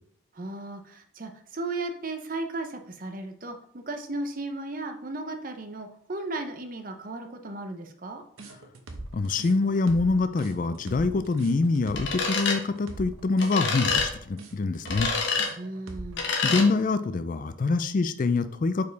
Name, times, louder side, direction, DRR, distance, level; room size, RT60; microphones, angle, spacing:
voice 1, 0.3-8.2 15.5-16.3, right 2 dB, 40° right, 5 dB, 0.7 m, -35 dB
sound 1, 8.4-16.2, right 2 dB, 80° right, 0.9 m, -41 dB
voice 2, 9.1-15.1 16.4-18.9, left 3 dB, 40° left, 11 dB, 0.3 m, -25 dB
sound 2, 12.0-12.6 13.4-14.1 14.8-15.5 16.2-16.7, left 4 dB, 60° left, 1.2 m, -26 dB
5.1 x 4.6 x 4.0 m, 0.63 s
head